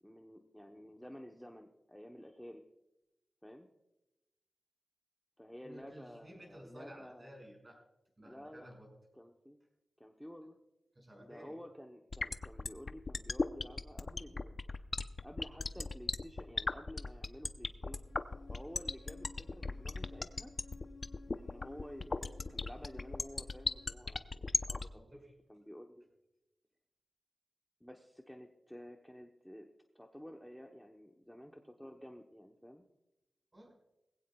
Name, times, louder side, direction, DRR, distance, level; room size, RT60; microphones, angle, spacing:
voice 1, 0.0-2.6 3.4-3.7 5.4-7.3 8.3-8.7 9.1-9.6 10.0-10.6 11.2-14.6 15.2-18.0 18.5-20.5 21.3-24.9 25.5-26.1 27.8-29.7 29.9-32.8, equal, 5° left, 2 dB, 0.9 m, -51 dB
voice 2, 5.6-7.8 8.2-8.9 10.9-11.6 24.9-25.3 33.5-33.7, equal, 25° right, -1 dB, 5.8 m, -54 dB
sound 1, 12.1-24.8, left 3 dB, 35° left, 0.6 m, -35 dB
sound 2, 18.1-24.0, left 4 dB, 70° left, 1.1 m, -58 dB
20.0 x 16.5 x 2.3 m, 0.94 s
wide cardioid pair, 135°, 0 cm